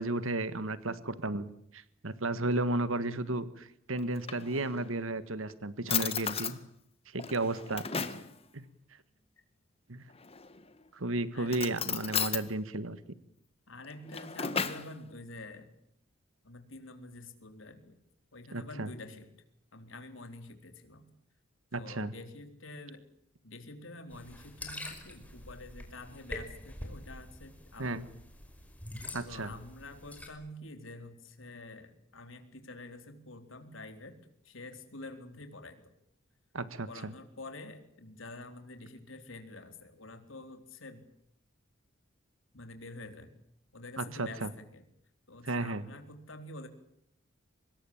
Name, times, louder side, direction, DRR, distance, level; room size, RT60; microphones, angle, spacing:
voice 1, 0.0-6.6 7.1-8.1 8.5-8.6 9.9-10.0 10.9-13.0 18.5-18.9 21.7-22.1 27.8-28.1 29.1-29.5 36.5-37.1 44.0-44.5 45.4-45.9, right 2 dB, 85° right, 14 dB, 1.7 m, -33 dB
Drawer open or close, 4.0-4.9 5.5-5.6 5.9-6.6 7.2-8.3 10.2-10.7 11.5-12.5 13.8-14.9, left 7 dB, 30° left, 1.8 m, -34 dB
voice 2, 11.3-11.8 13.7-15.7 16.4-18.0 18.3-19.3 19.7-21.1 21.7-23.1 23.4-28.1 29.2-34.2 34.4-35.9 36.9-41.0 42.5-43.3 43.7-44.8 45.3-46.7, left 2 dB, 70° left, 7 dB, 4.1 m, -47 dB
sound 1, 24.1-30.3, left 1 dB, 5° left, 5.2 m, -45 dB
25.5 x 21.5 x 8.8 m, 0.72 s
head